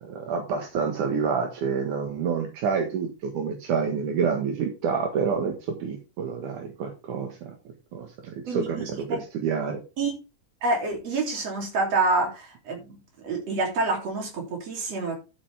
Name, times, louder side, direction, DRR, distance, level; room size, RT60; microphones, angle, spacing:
voice 1, 0.0-7.3 7.9-9.8, right 6 dB, 75° right, 3 dB, 3.0 m, -28 dB
voice 2, 8.5-9.2 10.0-10.1 10.6-13.0 13.2-15.2, right 3 dB, 55° right, 2 dB, 4.2 m, -27 dB
11.5 x 7.9 x 3.5 m, 0.29 s
omnidirectional pair, 3.6 m